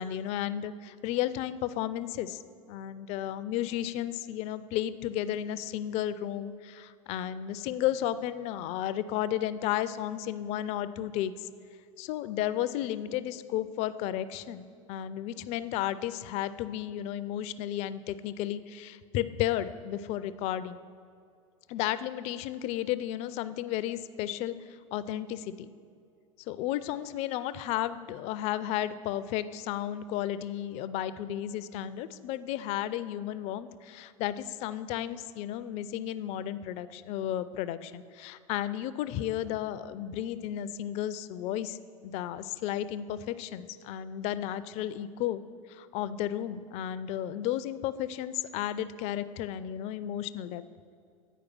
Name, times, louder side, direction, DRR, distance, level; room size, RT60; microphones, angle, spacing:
voice 1, 0.0-2.4 2.7-11.5 12.0-20.8 21.7-24.5 24.9-25.7 26.5-45.4 45.7-50.6, left 12 dB, 40° left, 14 dB, 0.4 m, -33 dB
9.0 x 4.8 x 6.0 m, 2.4 s
figure-of-eight pair, 80°, 17 cm